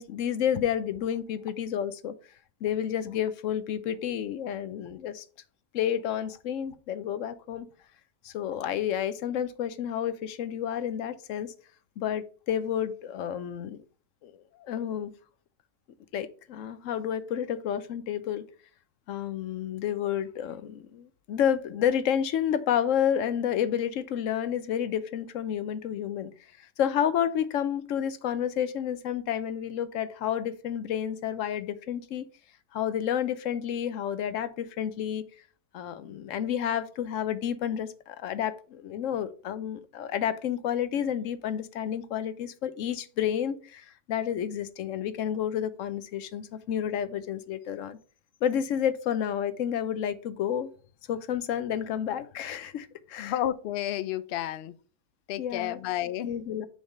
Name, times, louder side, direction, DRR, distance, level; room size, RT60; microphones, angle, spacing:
voice 1, 0.0-2.1 2.6-5.2 5.7-7.7 8.2-11.5 12.0-13.8 14.2-15.1 16.1-18.4 19.1-26.3 26.6-32.2 32.7-35.2 35.7-48.0 48.4-50.7 51.1-53.3 55.4-55.8 56.2-56.7, left 9 dB, 65° left, 0.9 m, -30 dB
voice 2, 53.2-54.8 55.3-56.3, left 12 dB, 85° left, 0.5 m, -31 dB
7.1 x 3.4 x 5.3 m
omnidirectional pair, 1.7 m